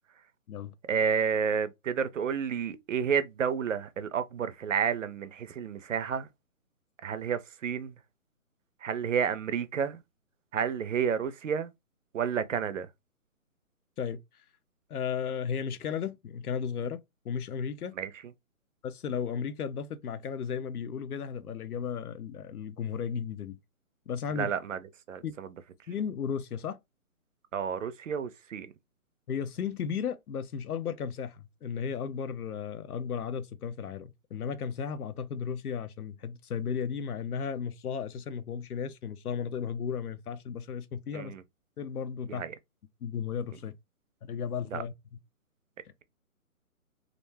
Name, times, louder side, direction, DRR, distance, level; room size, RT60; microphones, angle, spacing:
voice 1, 0.9-6.3 7.0-7.9 8.8-10.0 10.5-11.7 12.1-12.9 17.9-18.1 24.3-24.8 25.1-25.5 27.5-28.7 41.1-41.4 42.2-42.5 44.7-44.8, right 7 dB, 60° right, 0.5 m, -30 dB
voice 2, 14.9-18.0 18.8-23.6 24.1-24.5 25.2-25.3 25.9-26.8 29.3-41.3 41.8-42.4 43.0-43.7 44.2-44.9, left 7 dB, 90° left, 0.6 m, -34 dB
2.4 x 2.2 x 3.2 m
hypercardioid pair, 170°, 43 cm